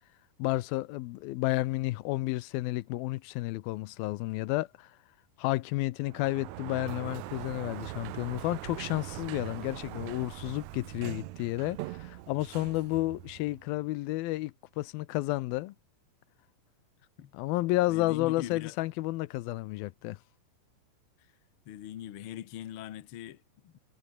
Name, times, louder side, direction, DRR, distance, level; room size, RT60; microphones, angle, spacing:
voice 1, 0.4-5.0 5.4-15.7 17.3-20.2, left 18 dB, 90° left, 2.6 m, -31 dB
Sliding door, 6.0-13.8, right 17 dB, 90° right, 1.6 m, -42 dB
voice 2, 17.9-18.8 21.2-21.3 21.6-23.8, left 11 dB, 65° left, 1.4 m, -42 dB
omnidirectional pair, 4.1 m